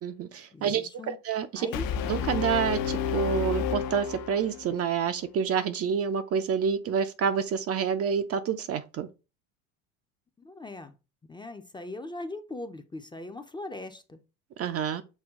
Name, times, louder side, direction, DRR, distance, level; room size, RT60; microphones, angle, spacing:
voice 1, 0.0-1.7 2.1-9.1 14.6-15.0, right 7 dB, 35° right, 0.5 m, -28 dB
voice 2, 0.5-1.2 1.5-1.9 10.4-10.9 11.3-14.2, left 2 dB, 10° left, 0.5 m, -40 dB
Brass instrument, 1.7-4.8, left 7 dB, 55° left, 0.7 m, -30 dB
6.2 x 2.3 x 3.6 m
hypercardioid pair, 80°, 42 cm